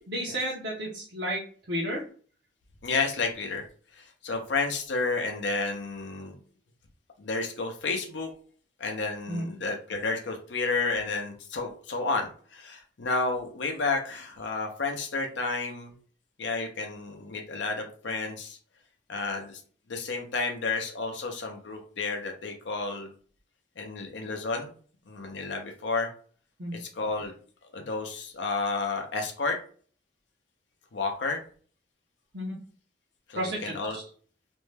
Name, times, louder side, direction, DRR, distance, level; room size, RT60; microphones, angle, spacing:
voice 1, 0.1-2.0 9.3-9.5 26.6-26.8 32.3-32.6 33.4-34.0, equal, 60° right, -5 dB, 0.7 m, -32 dB
voice 2, 2.8-3.6 3.9-6.3 7.2-8.3 8.8-15.9 16.4-18.6 19.1-19.6 19.9-23.1 23.8-24.7 25.1-26.1 26.7-27.3 27.7-29.6 30.9-31.4 33.3-34.0, left 3 dB, 70° left, 3 dB, 0.5 m, -31 dB
2.5 x 2.1 x 3.2 m, 0.44 s
head